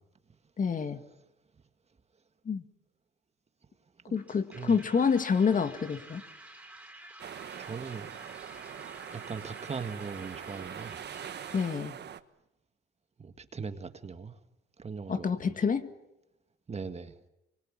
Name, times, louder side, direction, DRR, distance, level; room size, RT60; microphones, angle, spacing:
voice 1, 0.6-1.0 2.5-2.6 4.1-6.2 11.5-12.0 15.1-15.9, left 6 dB, 40° left, 2.0 m, -27 dB
sound 1, 4.2-11.8, right 1 dB, 5° right, 4.2 m, -50 dB
sound 2, 7.2-12.2, right 9 dB, 60° right, 1.3 m, -43 dB
voice 2, 7.6-8.1 9.1-11.0 13.2-14.4 14.8-15.6 16.7-17.1, right 5 dB, 35° right, 1.8 m, -40 dB
25.5 x 23.5 x 8.9 m
cardioid pair, 90°, 20 cm